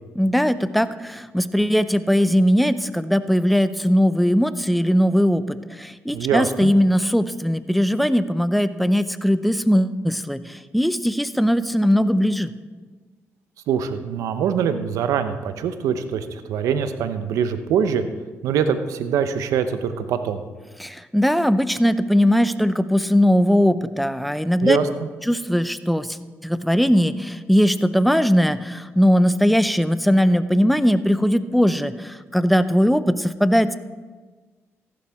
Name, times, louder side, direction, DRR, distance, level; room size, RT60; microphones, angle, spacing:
voice 1, 0.1-12.5 20.8-24.8 25.3-26.2 26.4-33.7, equal, ahead, 13 dB, 0.6 m, -19 dB
voice 2, 6.1-6.7 13.7-18.0 18.4-20.4 24.6-25.1, right 7 dB, 85° right, 9 dB, 0.8 m, -23 dB
14.5 x 11.5 x 3.5 m, 1.4 s
cardioid pair, 75°, 5 cm